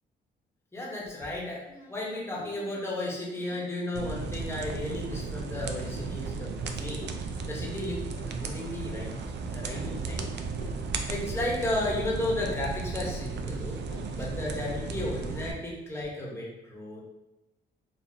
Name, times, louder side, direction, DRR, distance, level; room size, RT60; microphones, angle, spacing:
voice 1, 0.7-1.6 1.9-7.1 7.5-9.2 9.5-10.2 11.1-13.8 14.1-17.0, left 1 dB, 10° left, -4 dB, 1.2 m, -34 dB
sound 1, 1.0-3.8 4.1-4.8 5.2-5.3 5.6-5.7 6.0-6.1 6.6-6.7 7.0-7.1 7.5-7.6 7.9-8.3 8.6-8.7 9.0-9.1 9.8-9.9 10.2-10.3 10.6-10.7 11.4-11.5 11.8-12.0 12.3-12.4 13.0-13.2 13.5-14.1 14.6-16.1, left 3 dB, 45° left, 1.1 m, -50 dB
sound 2, 3.9-15.5, right 4 dB, 60° right, 0.5 m, -35 dB
4.1 x 2.7 x 2.8 m, 0.96 s
cardioid pair, 90°, 20 cm